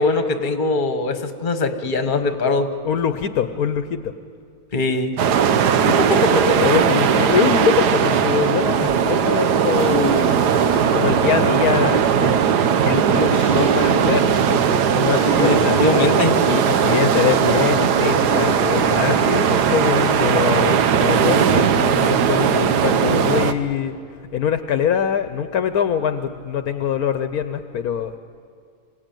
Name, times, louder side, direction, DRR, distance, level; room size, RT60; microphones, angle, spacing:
voice 1, 0.0-2.7 4.7-5.1 5.9-6.3 15.3-16.4, left 3 dB, 35° left, 8 dB, 1.3 m, -21 dB
voice 2, 2.8-4.1 6.6-10.4 10.9-12.4 12.8-15.8 16.4-24.0 24.3-28.2, left 8 dB, 70° left, 9 dB, 1.2 m, -23 dB
sound 1, 5.2-23.5, right 7 dB, 90° right, 1.4 m, -18 dB
Mechanisms, 9.7-12.2 13.3-14.2 15.1-17.4 18.0-22.2, right 2 dB, 60° right, 8.0 m, -31 dB
26.0 x 17.0 x 9.1 m, 2.2 s
omnidirectional pair, 1.7 m